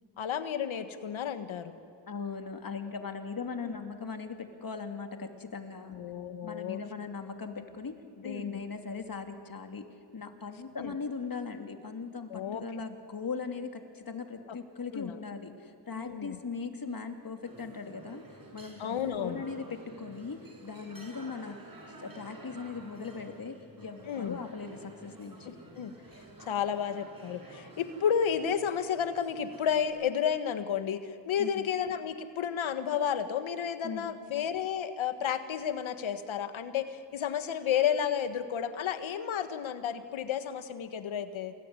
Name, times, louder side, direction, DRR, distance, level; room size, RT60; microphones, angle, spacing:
voice 1, 0.2-1.7 3.6-3.8 5.9-6.8 8.2-8.6 10.8-10.9 12.3-12.6 14.9-15.2 16.0-16.4 18.8-19.4 24.1-24.4 25.4-25.9 26.4-41.5, left 8 dB, 85° left, 10 dB, 1.6 m, -32 dB
voice 2, 2.1-6.0 6.4-18.2 18.5-19.6 20.0-21.6 22.0-25.6 31.4-31.6 33.8-34.1, left 5 dB, 45° left, 5 dB, 3.0 m, -39 dB
sound 1, 17.4-29.9, right 2 dB, 45° right, 6.7 m, -51 dB
28.0 x 20.5 x 9.8 m, 2.3 s
cardioid pair, 60°, 46 cm